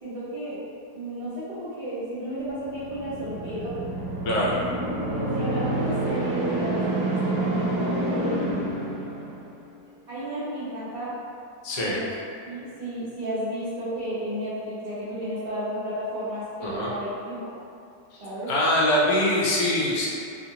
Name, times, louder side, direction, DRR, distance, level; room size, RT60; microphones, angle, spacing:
voice 1, 0.0-0.6 0.9-3.7 5.1-8.6 10.1-11.2 11.8-12.1 12.4-17.5 18.2-18.5, right 1 dB, 40° right, -13 dB, 1.1 m, -33 dB
sound 1, 2.6-9.6, right 1 dB, 65° right, 0.9 m, -28 dB
voice 2, 4.2-4.6 11.6-12.0 16.6-16.9 18.1-20.1, left 1 dB, 80° left, -5 dB, 1.1 m, -23 dB
2.8 x 2.5 x 2.7 m, 2.5 s
omnidirectional pair, 1.6 m